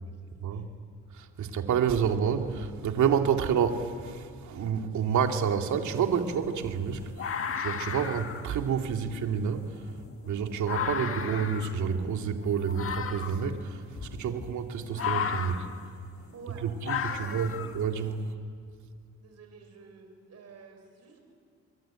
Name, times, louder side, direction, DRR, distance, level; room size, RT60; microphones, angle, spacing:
voice 1, 1.1-9.9 10.2-15.7 16.6-18.3, right 7 dB, 75° right, 4 dB, 2.5 m, -29 dB
sound 1, 5.1-5.2 5.7-18.2, left 7 dB, 45° left, 1.7 m, -36 dB
voice 2, 16.3-16.7 17.1-17.6 18.6-18.7 19.2-21.2, right 5 dB, 60° right, 4 dB, 6.8 m, -50 dB
25.5 x 23.0 x 9.0 m, 2.3 s
cardioid pair, 90°, 30 cm